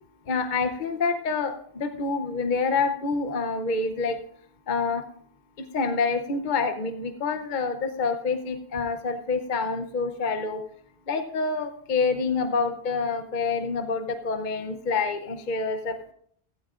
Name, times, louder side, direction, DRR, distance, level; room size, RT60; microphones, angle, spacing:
voice 1, 0.3-4.2 4.7-5.0 5.6-10.6 11.1-16.1, left 4 dB, 50° left, 7 dB, 0.9 m, -27 dB
15.5 x 14.0 x 2.5 m, 0.62 s
omnidirectional pair, 1.0 m